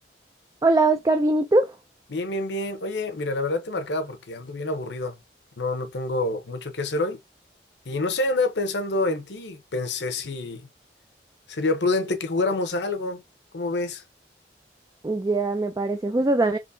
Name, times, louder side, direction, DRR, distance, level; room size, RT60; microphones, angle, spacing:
voice 1, 0.6-1.7 15.0-16.6, right 2 dB, 20° right, 0.3 m, -21 dB
voice 2, 2.1-5.2 5.6-7.2 7.8-10.7 11.5-13.2 13.5-14.0, left 2 dB, 75° left, 0.9 m, -27 dB
3.8 x 3.1 x 2.6 m
head